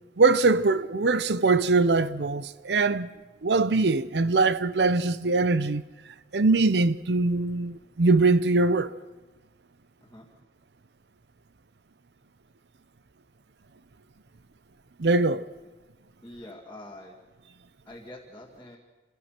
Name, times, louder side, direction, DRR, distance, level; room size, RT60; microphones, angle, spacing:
voice 1, 0.2-3.1 3.4-5.8 6.3-8.9 15.0-15.4, right 3 dB, 80° right, 0.7 m, -22 dB
voice 2, 16.2-17.2 17.9-18.8, left 1 dB, 15° left, 2.3 m, -45 dB
27.0 x 17.0 x 5.9 m
head